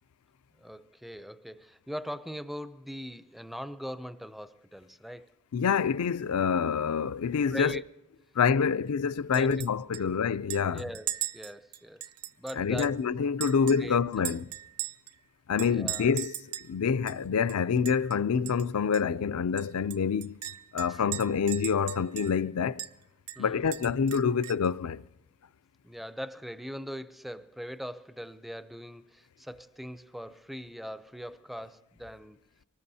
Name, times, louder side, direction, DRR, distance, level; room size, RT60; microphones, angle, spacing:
voice 1, 0.6-5.3 7.5-7.8 9.3-10.2 10.7-12.0 12.4-13.0 13.8-14.3 15.7-16.1 20.9-21.0 23.4-24.1 25.8-32.4, equal, ahead, 0.4 m, -41 dB
voice 2, 5.5-7.8 8.4-10.8 12.6-14.4 15.5-16.3 16.6-20.4 20.7-22.8 23.4-25.0, left 6 dB, 70° left, 0.4 m, -27 dB
Chink clink, 9.3-9.7 9.9-10.0 10.5-13.0 13.4-15.1 15.6-16.7 17.1-17.2 17.5-18.2 18.5-18.6 18.9-19.0 19.6-22.5 22.8-22.9 23.3-24.7, right 13 dB, 90° right, 0.7 m, -38 dB
24.0 x 19.5 x 2.8 m
head